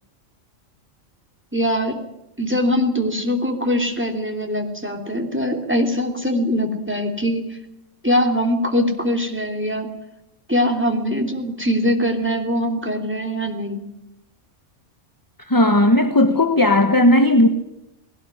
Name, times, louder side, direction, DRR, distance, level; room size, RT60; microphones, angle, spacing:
voice 1, 1.5-2.0 2.4-7.4 8.0-9.9 10.5-13.8, equal, 10° right, 3.0 m, -22 dB
voice 2, 15.4-17.5, left 1 dB, 15° left, 1.1 m, -15 dB
19.5 x 18.0 x 9.9 m
omnidirectional pair, 1.3 m